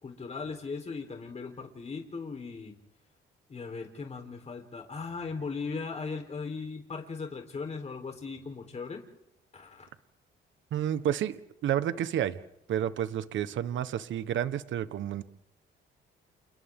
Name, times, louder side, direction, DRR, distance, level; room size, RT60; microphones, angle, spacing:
voice 1, 0.0-2.7 3.5-9.0 9.5-9.9, left 4 dB, 35° left, 3 dB, 4.0 m, -38 dB
voice 2, 10.7-12.4 12.7-15.2, right 10 dB, 75° right, 12 dB, 1.4 m, -30 dB
29.5 x 29.5 x 3.8 m, 0.81 s
cardioid pair, 90°, 20 cm